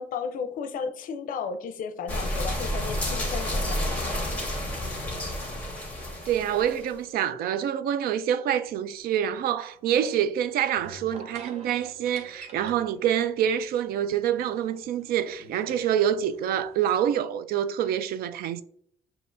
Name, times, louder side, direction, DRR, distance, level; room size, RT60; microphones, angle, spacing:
voice 1, 0.0-4.3, left 6 dB, 65° left, 0.5 m, -34 dB
sound 1, 2.1-6.9, left 1 dB, 10° left, 1.4 m, -30 dB
voice 2, 6.3-18.6, right 9 dB, 80° right, 0.4 m, -26 dB
sound 2, 8.6-17.2, right 3 dB, 45° right, 0.8 m, -50 dB
6.7 x 2.8 x 2.6 m
cardioid pair, 170°, 15 cm